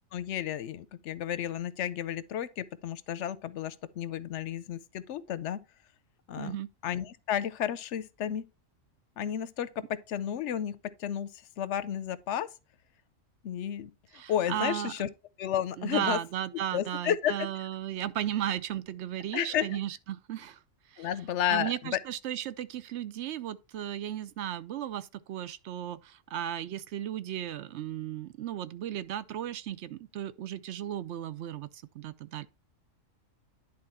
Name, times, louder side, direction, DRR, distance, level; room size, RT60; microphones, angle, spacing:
voice 1, 0.1-5.6 6.3-6.6 6.8-8.4 9.2-9.7 10.1-11.3 11.6-12.5 13.4-15.1 15.4-16.2 16.7-17.5 19.3-19.7 21.0-22.0, left 10 dB, 70° left, 0.9 m, -32 dB
voice 2, 6.4-6.7 14.1-14.9 15.8-20.6 20.9-21.1 21.5-32.5, right 11 dB, 65° right, 0.8 m, -35 dB
10.5 x 3.7 x 4.2 m
omnidirectional pair, 1.3 m